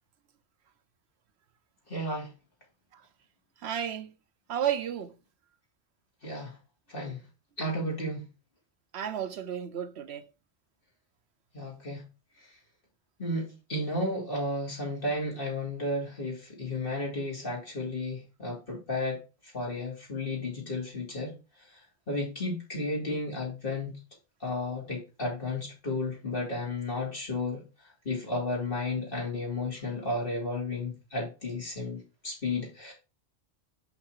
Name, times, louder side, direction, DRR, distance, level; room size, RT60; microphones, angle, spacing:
voice 1, 1.9-2.3 6.2-6.5 6.9-7.2 7.6-8.2 11.5-12.0 13.2-19.2 19.5-21.4 22.1-24.0 24.4-27.6 28.0-32.9, left 2 dB, 50° left, 3.2 m, -33 dB
voice 2, 3.6-4.1 4.5-5.1 8.9-10.3, right 9 dB, 70° right, 1.0 m, -32 dB
5.6 x 5.6 x 4.6 m
omnidirectional pair, 1.2 m